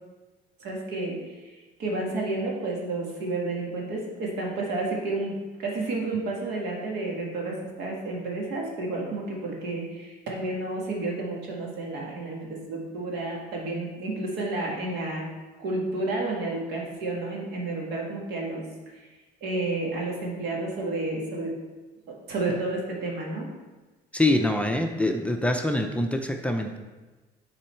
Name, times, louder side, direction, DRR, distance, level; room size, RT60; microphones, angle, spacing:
voice 1, 0.6-1.5 1.8-15.3 15.6-18.6 18.9-19.0 19.4-21.6 22.1-23.5, right 2 dB, 80° right, -2 dB, 1.8 m, -31 dB
voice 2, 24.1-26.8, left 1 dB, 5° left, 3 dB, 0.5 m, -25 dB
7.3 x 3.9 x 4.5 m, 1.2 s
cardioid pair, 110°, 17 cm